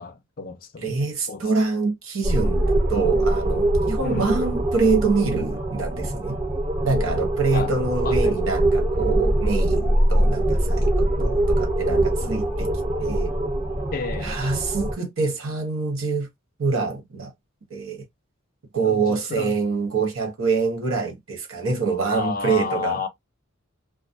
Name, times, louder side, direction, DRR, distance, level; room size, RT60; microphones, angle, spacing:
voice 1, 0.0-0.9 1.3-1.4 4.0-4.4 7.5-7.8 8.0-8.4 11.2-11.6 11.9-12.3 13.9-14.3 18.8-19.6 22.1-23.1, left 4 dB, 45° left, 0.4 m, -31 dB
voice 2, 0.8-6.4 6.8-12.7 13.0-13.3 14.2-16.3 16.6-17.3 17.7-18.0 18.7-23.0, right 4 dB, 85° right, 0.9 m, -25 dB
sound 1, 2.2-14.9, right 1 dB, 35° right, 1.0 m, -23 dB
2.3 x 2.2 x 2.6 m
head